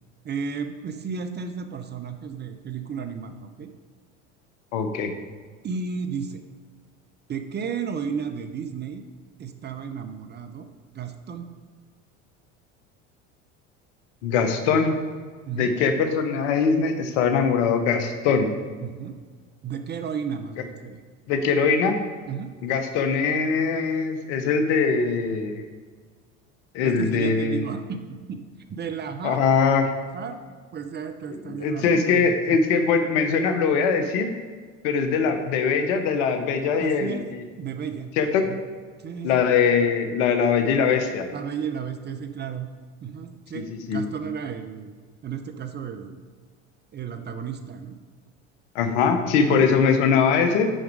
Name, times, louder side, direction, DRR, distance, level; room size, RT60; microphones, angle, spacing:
voice 1, 0.2-3.7 5.6-6.4 7.3-9.0 9.4-10.7 10.9-11.5 15.5-15.7 18.8-19.2 19.6-21.0 22.3-22.5 26.8-28.4 28.7-29.4 30.1-30.3 30.7-32.6 36.7-37.3 37.6-38.1 38.5-38.6 39.0-39.4 41.3-42.7 43.0-44.9 45.2-46.2 46.9-48.0 49.5-49.7, right 6 dB, 30° right, 8 dB, 0.6 m, -33 dB
voice 2, 4.7-5.1 14.2-15.0 15.6-18.5 21.3-22.0 22.6-25.6 26.7-27.6 29.2-29.9 31.6-34.3 34.8-37.4 38.2-38.5 39.2-41.3 43.5-43.6 43.9-44.0 48.7-50.7, left 5 dB, 70° left, 7 dB, 0.9 m, -22 dB
6.3 x 5.0 x 4.7 m, 1.5 s
hypercardioid pair, 75°, 37 cm